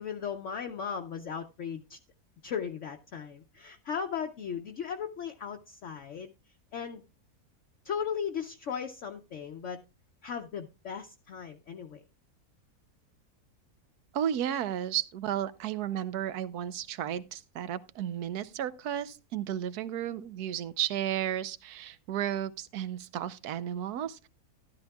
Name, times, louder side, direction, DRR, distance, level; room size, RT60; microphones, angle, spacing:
voice 1, 0.0-2.0 2.4-6.3 6.7-7.0 7.8-9.8 10.2-12.0, left 7 dB, 60° left, 0.9 m, -37 dB
voice 2, 14.1-24.3, right 10 dB, 80° right, 1.2 m, -33 dB
13.5 x 11.5 x 2.3 m
omnidirectional pair, 1.6 m